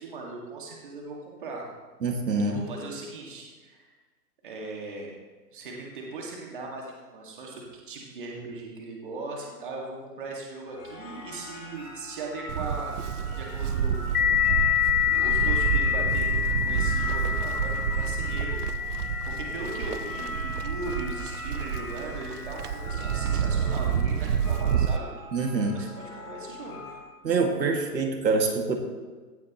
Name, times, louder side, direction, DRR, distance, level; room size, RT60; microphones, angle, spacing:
voice 1, 0.0-1.6 2.5-3.9 4.4-5.1 5.5-14.5 15.1-16.3 16.6-18.6 18.9-25.1 25.7-26.8, right 3 dB, 30° right, -2 dB, 2.0 m, -39 dB
voice 2, 2.0-2.6 25.3-25.9 27.2-28.8, right 4 dB, 90° right, 3 dB, 2.2 m, -25 dB
sound 1, 10.7-27.0, equal, 15° left, 3.3 m, -42 dB
Livestock farm animals working animals, 12.5-25.0, right 8 dB, 65° right, 0.6 m, -29 dB
sound 2, 14.1-23.4, left 10 dB, 60° left, 0.7 m, -29 dB
17.0 x 10.5 x 3.1 m, 1.4 s
hypercardioid pair, 175°, 50 cm